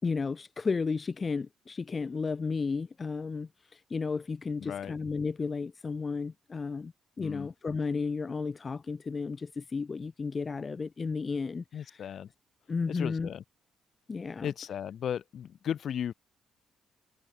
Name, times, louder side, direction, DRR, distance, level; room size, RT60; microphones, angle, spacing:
voice 1, 0.0-12.2 12.7-13.3 14.1-14.5, left 4 dB, 40° left, 1.0 m, -33 dB
voice 2, 4.6-4.9 7.2-7.5 11.7-12.3 12.9-13.4 14.4-16.1, left 9 dB, 65° left, 3.0 m, -35 dB
supercardioid pair, 70°, 0 cm